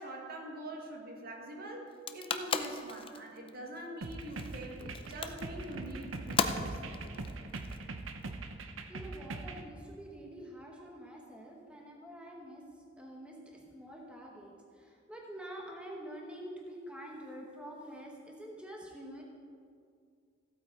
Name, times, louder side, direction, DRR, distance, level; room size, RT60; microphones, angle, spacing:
voice 1, 0.0-7.2, right 1 dB, 50° right, 1 dB, 1.6 m, -44 dB
sound 1, 1.9-8.2, left 5 dB, 25° left, 0.5 m, -37 dB
sound 2, 4.0-9.7, right 2 dB, 90° right, 0.8 m, -42 dB
voice 2, 8.9-12.7 13.0-19.2, equal, 5° right, -1 dB, 1.1 m, -47 dB
15.0 x 8.4 x 4.5 m, 2.2 s
head